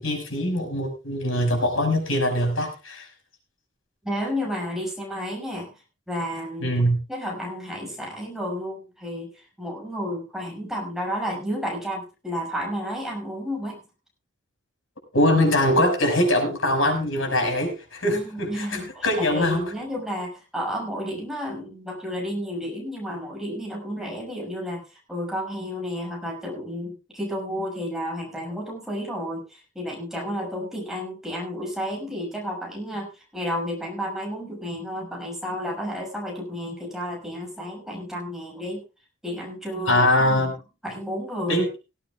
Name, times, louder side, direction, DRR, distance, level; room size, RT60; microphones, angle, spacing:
voice 1, 0.0-3.1 6.6-7.0 15.1-19.7 39.9-40.5 41.5-41.7, left 1 dB, 90° left, 4 dB, 5.6 m, -22 dB
voice 2, 4.0-5.7 6.1-6.8 7.1-9.3 9.6-13.8 18.1-24.8 25.1-33.1 33.3-38.8 39.2-40.5 40.8-41.6, equal, ahead, -2 dB, 6.6 m, -31 dB
18.0 x 16.0 x 2.4 m, 0.31 s
head